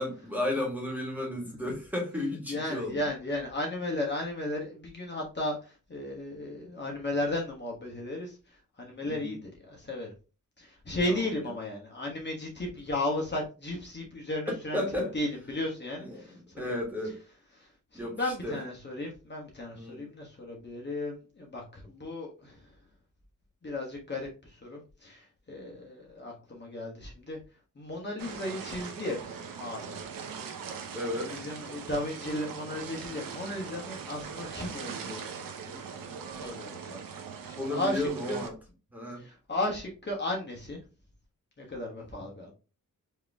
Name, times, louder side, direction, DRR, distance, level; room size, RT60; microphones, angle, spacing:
voice 1, 0.0-3.1 9.1-9.3 11.1-11.2 14.5-15.1 16.0-17.2 17.9-18.6 19.7-20.0 30.9-31.3 35.7-35.8 37.5-38.5 38.9-39.2, left 1 dB, 5° right, 1.8 m, -33 dB
voice 2, 2.5-8.4 8.8-10.1 10.6-14.8 15.1-16.4 17.6-22.6 23.6-27.4 27.8-30.0 31.3-35.3 36.0-37.0 37.4-38.4 39.1-40.8 41.6-42.5, left 1 dB, 30° left, 1.3 m, -35 dB
sound 1, 28.2-38.5, right 6 dB, 90° right, 0.9 m, -41 dB
4.8 x 3.0 x 3.5 m
wide cardioid pair, 105°, 33 cm